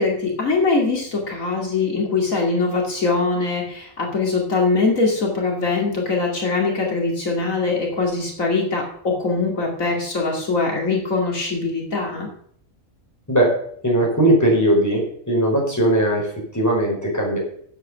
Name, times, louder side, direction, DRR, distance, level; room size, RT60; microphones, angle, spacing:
voice 1, 0.0-12.3, left 3 dB, 70° left, -1 dB, 2.9 m, -22 dB
voice 2, 13.8-17.4, right 1 dB, 10° left, -2 dB, 4.8 m, -19 dB
10.0 x 7.9 x 6.8 m, 0.63 s
omnidirectional pair, 1.4 m